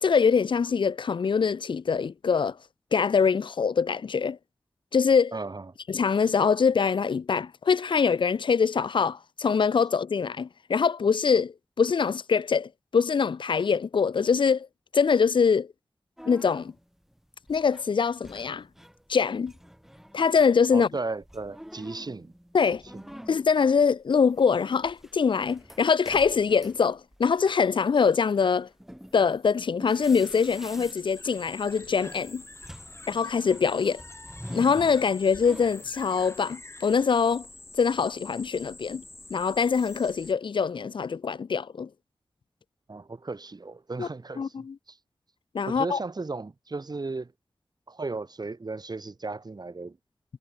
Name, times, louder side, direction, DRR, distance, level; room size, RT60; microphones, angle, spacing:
voice 1, 0.0-2.6 2.9-4.4 4.9-5.3 5.9-14.7 14.9-15.7 16.3-16.7 17.5-18.7 19.1-19.5 20.1-20.9 22.5-22.8 23.3-28.7 29.1-32.4 33.1-34.0 34.5-37.5 37.8-39.0 39.3-41.9 44.0-44.1 44.4-44.8 45.5-46.0, left 6 dB, 75° left, 0.5 m, -24 dB
voice 2, 5.3-5.7 20.7-22.3 22.9-23.0 42.9-45.0 45.6-47.3 47.9-50.0, right 3 dB, 55° right, 3.5 m, -35 dB
sound 1, 16.2-19.1 19.4-35.9, equal, 5° right, 4.1 m, -47 dB
sound 2, 30.0-40.3, left 2 dB, 30° left, 5.7 m, -46 dB
wide cardioid pair, 55°, 8 cm